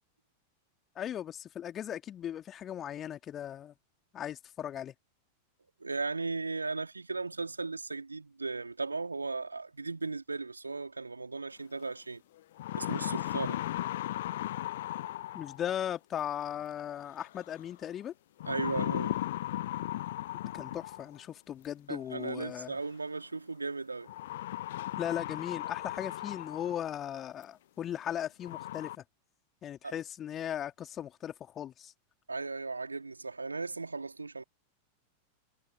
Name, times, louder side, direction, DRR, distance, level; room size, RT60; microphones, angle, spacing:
voice 1, 0.9-3.7 4.1-4.9 15.3-18.1 20.5-22.7 25.0-29.0 29.6-31.9, left 10 dB, 25° left, 3.0 m, -37 dB
voice 2, 5.8-12.2 12.8-13.6 18.4-19.2 21.9-24.1 29.8-29.9 32.3-34.4, right 3 dB, 80° right, 2.9 m, -36 dB
sound 1, 11.8-11.9 12.4-15.8 17.2-17.6 18.4-21.2 22.5-22.6 24.1-26.9 27.4-27.5 28.1-28.2 28.4-29.0, left 14 dB, 55° left, 0.4 m, -36 dB
figure-of-eight pair, 90°, 0 cm